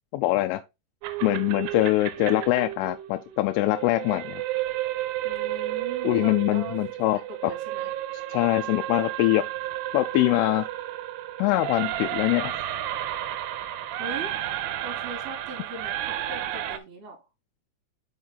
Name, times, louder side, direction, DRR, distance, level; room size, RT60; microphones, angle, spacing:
voice 1, 0.1-0.6 1.2-4.4 6.0-7.2 8.3-9.5 9.9-10.6 11.4-12.6, left 17 dB, 90° left, 3.1 m, -23 dB
sound 1, 1.0-16.8, right 13 dB, 90° right, 3.2 m, -32 dB
voice 2, 5.2-6.8 7.3-7.9 14.0-14.3 14.8-17.2, right 2 dB, 35° right, 3.1 m, -40 dB
6.4 x 6.3 x 3.8 m
omnidirectional pair, 5.6 m